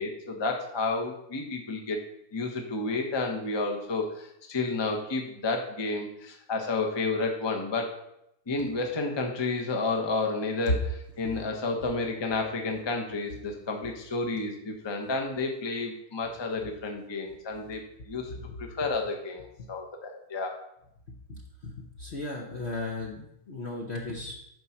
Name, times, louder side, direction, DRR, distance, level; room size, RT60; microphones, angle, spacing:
voice 1, 0.0-2.0 2.3-8.0 8.5-20.6, left 3 dB, 20° left, 2 dB, 0.7 m, -31 dB
voice 2, 21.3-24.3, left 2 dB, 45° left, 0 dB, 0.9 m, -34 dB
9.3 x 4.2 x 5.8 m, 0.77 s
omnidirectional pair, 2.1 m